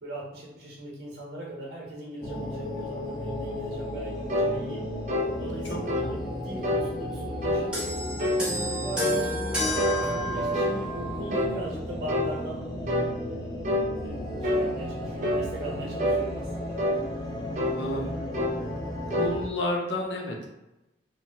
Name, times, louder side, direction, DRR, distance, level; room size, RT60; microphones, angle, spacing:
voice 1, 0.0-4.8 5.4-8.0 8.5-13.4 14.0-16.8, right 1 dB, 60° right, -4 dB, 0.9 m, -39 dB
sound 1, 2.2-19.5, left 1 dB, 20° left, 0.3 m, -34 dB
sound 2, 4.3-4.5 5.1-5.3 5.9-6.1 6.6-6.9 7.4-7.7 8.2-8.5 9.0-9.2 9.8-10.8 11.3-11.6 12.1-12.3 12.9-13.1 13.6-13.9 14.4-14.7 15.2-15.5 16.0-16.2 16.8-17.0 17.6-17.8 18.3-18.6 19.1-19.3, equal, 40° right, 0.4 m, -26 dB
voice 2, 5.7-6.2 6.7-6.8 17.7-18.2 19.0-20.5, left 1 dB, 80° left, -1 dB, 0.6 m, -32 dB
sound 3, 7.7-11.3 12.2-12.4, left 1 dB, 5° right, 0.7 m, -32 dB
3.0 x 2.1 x 2.7 m, 0.97 s
head